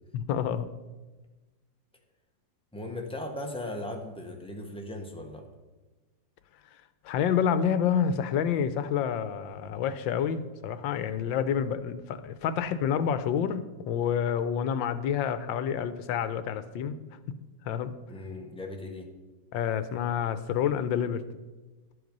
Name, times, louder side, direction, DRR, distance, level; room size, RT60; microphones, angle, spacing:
voice 1, 0.1-0.7 7.0-17.0 17.6-17.9 19.5-21.2, left 8 dB, 90° left, 12 dB, 1.4 m, -28 dB
voice 2, 2.7-5.5 18.1-19.1, left 1 dB, 5° left, 2 dB, 0.9 m, -38 dB
12.0 x 7.9 x 5.3 m, 1.2 s
omnidirectional pair, 2.0 m